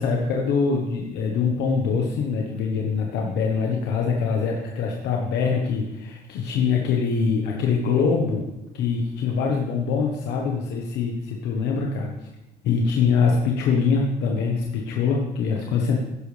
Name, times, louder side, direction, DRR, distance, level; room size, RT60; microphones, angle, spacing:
voice 1, 0.0-8.4 8.7-12.3 12.6-16.0, left 5 dB, 85° left, 0 dB, 1.3 m, -23 dB
11.5 x 10.5 x 3.4 m, 1.0 s
cardioid pair, 110°, 17 cm